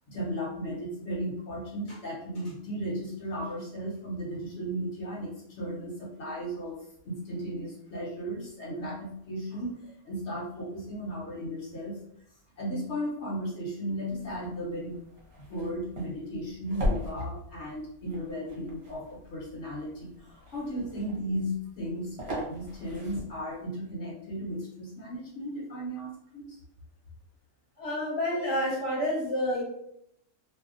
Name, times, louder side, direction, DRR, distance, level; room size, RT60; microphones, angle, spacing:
voice 1, 0.1-6.8 7.0-12.0 12.6-15.0 15.4-26.6, equal, 55° left, -5 dB, 1.0 m, -35 dB
sound 1, 14.0-23.6, left 1 dB, 55° right, 0.9 m, -39 dB
voice 2, 27.8-29.6, left 1 dB, 20° left, -6 dB, 0.8 m, -29 dB
2.6 x 2.0 x 2.4 m, 0.73 s
omnidirectional pair, 1.5 m